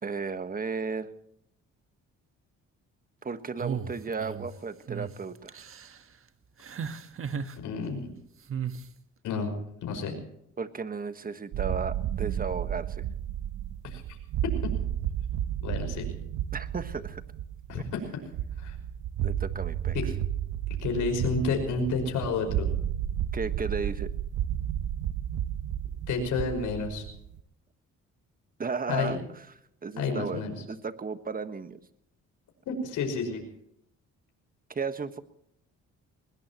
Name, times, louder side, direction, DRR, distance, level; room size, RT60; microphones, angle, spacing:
voice 1, 0.0-1.1 3.2-5.6 10.6-13.0 16.5-17.2 17.7-17.8 19.2-20.0 23.3-24.1 28.6-29.2 29.8-31.8 34.7-35.2, right 5 dB, 30° right, 10 dB, 1.5 m, -34 dB
sound 1, 3.6-4.5 4.9-5.1 5.5-6.0 6.6-7.6 8.5-8.8, right 7 dB, 45° right, 1.4 m, -35 dB
voice 2, 7.6-8.1 9.2-9.5 9.8-10.1 13.8-14.0 15.6-16.1 17.7-18.0 18.6-18.8 19.9-20.0 20.8-22.7 26.1-27.0 28.9-29.2 30.0-30.5 32.7-33.4, left 4 dB, 80° left, 3 dB, 5.5 m, -30 dB
sound 2, 11.5-27.4, right 10 dB, 75° right, 1.0 m, -32 dB
21.0 x 20.5 x 3.0 m, 0.75 s
cardioid pair, 90°, 30 cm